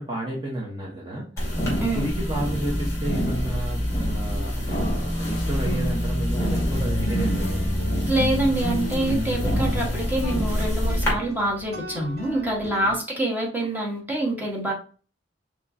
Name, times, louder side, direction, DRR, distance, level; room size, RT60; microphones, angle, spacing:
voice 1, 0.0-7.9 12.8-12.9, right 1 dB, 25° right, -3 dB, 1.0 m, -32 dB
sound 1, 1.4-11.1, equal, 15° left, 2.4 m, -26 dB
sound 2, 6.7-12.9, left 1 dB, 60° right, 2.0 m, -33 dB
voice 2, 8.1-14.7, right 1 dB, 10° right, -2 dB, 1.3 m, -26 dB
5.5 x 3.0 x 2.7 m, 0.38 s
head